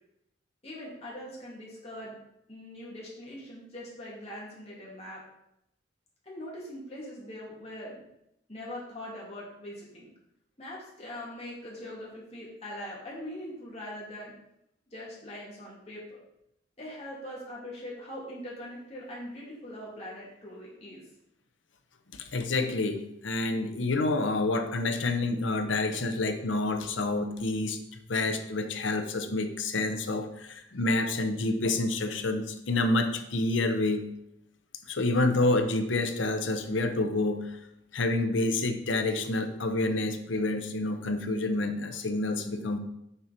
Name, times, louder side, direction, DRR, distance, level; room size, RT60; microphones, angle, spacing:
voice 1, 0.6-2.1 2.5-5.2 6.2-8.0 8.5-10.1 10.6-14.3 14.9-16.1 16.8-21.0, left 1 dB, 35° left, -5 dB, 2.5 m, -42 dB
voice 2, 22.1-27.8 28.1-34.1 34.9-37.6 37.9-42.8, left 2 dB, 85° left, 7 dB, 0.8 m, -28 dB
6.9 x 4.5 x 5.2 m, 0.81 s
head